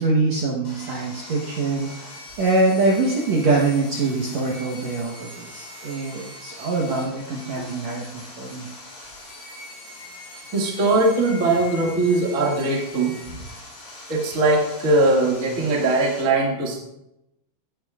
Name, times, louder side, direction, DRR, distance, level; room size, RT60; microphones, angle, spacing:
voice 1, 0.0-8.7, right 3 dB, 60° right, -2 dB, 2.0 m, -24 dB
Sawing, 0.6-16.2, left 2 dB, 70° left, 5.7 m, -41 dB
voice 2, 10.5-13.1 14.1-16.8, right 2 dB, 30° right, -2 dB, 1.6 m, -20 dB
16.5 x 9.6 x 2.4 m, 0.85 s
omnidirectional pair, 4.3 m